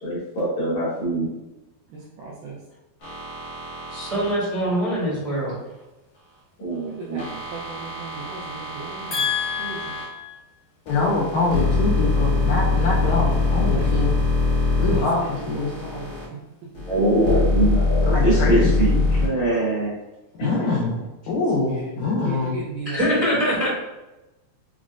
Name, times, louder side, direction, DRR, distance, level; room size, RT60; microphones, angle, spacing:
voice 1, 0.0-1.3 6.6-7.2 9.1-10.4 16.8-20.0 20.4-21.0, right 1 dB, 60° left, -8 dB, 2.0 m, -24 dB
voice 2, 1.9-2.6 6.8-9.3 9.6-9.8 13.6-14.2 14.9-16.4 21.6-22.0 22.2-23.1, right 3 dB, 80° right, -5 dB, 2.0 m, -36 dB
sound 1, 3.0-4.3 7.2-10.1 10.9-16.2 16.7-19.3, left 3 dB, 45° left, 1.3 m, -23 dB
voice 3, 3.9-5.5 22.9-23.7, equal, 55° right, -10 dB, 1.1 m, -23 dB
voice 4, 10.9-14.1 14.8-15.7 18.0-19.1 20.4-20.9 21.3-22.6, left 3 dB, 85° left, -4 dB, 2.0 m, -24 dB
6.0 x 2.1 x 2.4 m, 0.99 s
omnidirectional pair, 4.3 m